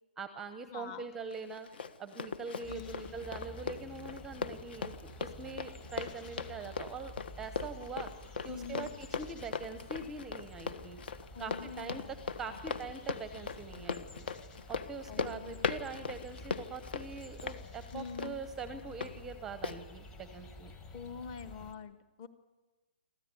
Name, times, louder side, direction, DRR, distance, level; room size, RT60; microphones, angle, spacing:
voice 1, 0.2-1.7 2.0-8.1 8.4-11.0 11.4-14.3 14.7-20.7, right 4 dB, 5° right, 9 dB, 0.8 m, -43 dB
voice 2, 0.7-1.1 2.7-3.1 8.5-8.9 11.3-12.2 12.5-12.6 15.1-15.7 17.9-18.4 20.9-22.3, left 6 dB, 30° left, 10 dB, 1.5 m, -45 dB
Run, 1.3-19.1 19.6-19.8, left 5 dB, 60° left, 1.5 m, -40 dB
sound 1, 2.6-21.7, left 1 dB, 10° left, 1.3 m, -51 dB
26.0 x 14.5 x 9.8 m, 1.2 s
hypercardioid pair, 170°, 6 cm